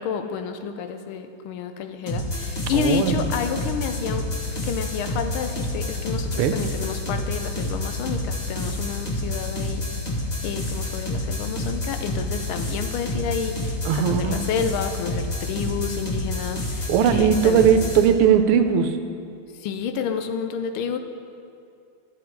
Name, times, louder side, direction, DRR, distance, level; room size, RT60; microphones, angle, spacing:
voice 1, 0.0-4.3 4.6-9.9 10.4-17.8 19.6-21.0, left 7 dB, 75° left, 7 dB, 1.4 m, -30 dB
sound 1, 2.1-18.1, left 2 dB, 25° left, 1.3 m, -29 dB
voice 2, 2.7-3.2 6.4-6.6 13.8-14.4 16.9-19.0, right 8 dB, 85° right, 8 dB, 1.6 m, -19 dB
12.0 x 7.3 x 4.6 m, 2.5 s
omnidirectional pair, 2.4 m